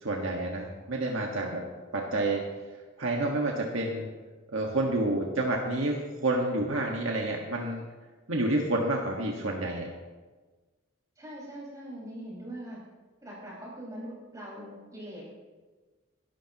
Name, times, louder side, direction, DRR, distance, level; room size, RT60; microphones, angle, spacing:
voice 1, 0.0-1.6 1.9-2.4 3.0-4.1 4.5-7.8 8.3-9.9, right 2 dB, 90° right, 0 dB, 1.6 m, -29 dB
voice 2, 11.2-12.8 13.2-15.2, right 1 dB, 15° right, -5 dB, 5.2 m, -42 dB
22.5 x 12.0 x 3.0 m, 1.3 s
head